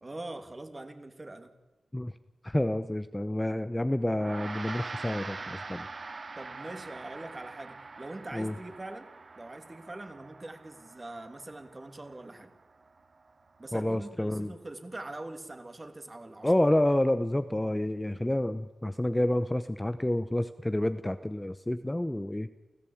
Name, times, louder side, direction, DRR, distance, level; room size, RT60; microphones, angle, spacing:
voice 1, 0.0-1.5 6.4-9.1 9.4-12.5 13.6-16.5, right 2 dB, 30° right, 7 dB, 2.7 m, -43 dB
voice 2, 2.4-5.9 8.3-8.5 13.7-14.5 16.4-22.5, left 1 dB, 10° left, 11 dB, 0.8 m, -29 dB
Gong, 4.1-13.7, right 3 dB, 45° right, 1.1 m, -44 dB
29.0 x 15.0 x 8.8 m, 1.1 s
cardioid pair, 80°, 0 cm